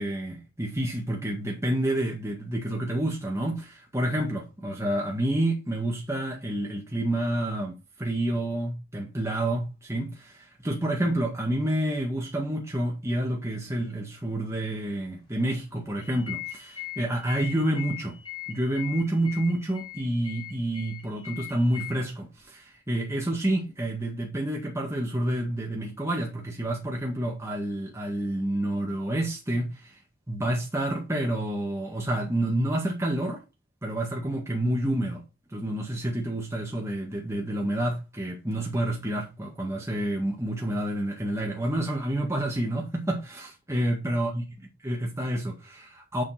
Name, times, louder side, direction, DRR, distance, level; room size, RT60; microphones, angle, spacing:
voice 1, 0.0-18.2 18.5-30.0 30.3-33.4 33.8-35.2 35.5-44.4 44.8-46.2, right 1 dB, 15° right, 1.8 m, -29 dB
sound 1, 16.0-21.9, left 14 dB, 25° left, 3.4 m, -40 dB
7.3 x 7.2 x 4.3 m
head